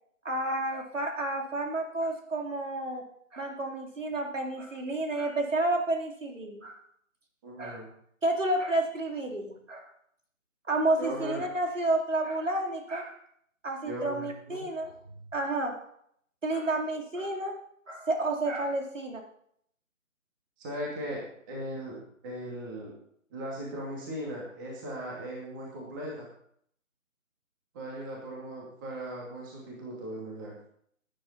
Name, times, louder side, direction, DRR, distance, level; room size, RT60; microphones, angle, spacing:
voice 1, 0.2-3.0 3.3-6.8 7.6-7.9 8.2-9.9 10.7-13.1 13.6-14.9 15.3-15.7 16.4-17.5 17.9-19.2, right 2 dB, 60° right, 2 dB, 3.4 m, -30 dB
voice 2, 7.4-7.9 11.0-11.4 13.8-14.7 20.6-22.0 22.2-22.9 23.3-26.3 27.7-30.5, right 1 dB, 15° right, -3 dB, 2.4 m, -38 dB
18.0 x 10.0 x 4.3 m, 0.67 s
figure-of-eight pair, 155°, 41 cm